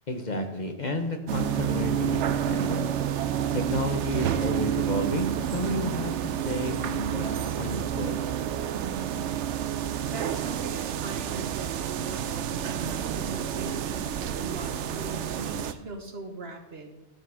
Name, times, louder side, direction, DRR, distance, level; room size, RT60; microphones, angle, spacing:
voice 1, 0.1-2.9 3.5-8.2, left 1 dB, 40° left, 5 dB, 1.1 m, -31 dB
sound 1, 1.3-15.7, right 9 dB, 80° right, 0.9 m, -29 dB
voice 2, 8.7-9.5 10.0-16.9, right 2 dB, 60° right, 5 dB, 1.5 m, -40 dB
12.0 x 7.4 x 4.8 m, 1.0 s
omnidirectional pair, 1.2 m